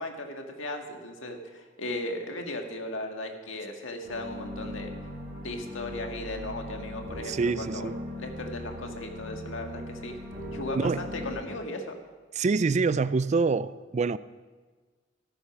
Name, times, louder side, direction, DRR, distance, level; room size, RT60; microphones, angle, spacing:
voice 1, 0.0-4.9 5.4-7.9 8.2-10.2 10.5-12.0, left 2 dB, 75° left, 1.8 m, -36 dB
sound 1, 4.0-11.3, equal, 50° right, 5.3 m, -39 dB
voice 2, 7.3-7.9 10.7-11.0 12.4-14.2, right 4 dB, 35° right, 0.4 m, -26 dB
14.0 x 12.0 x 6.0 m
head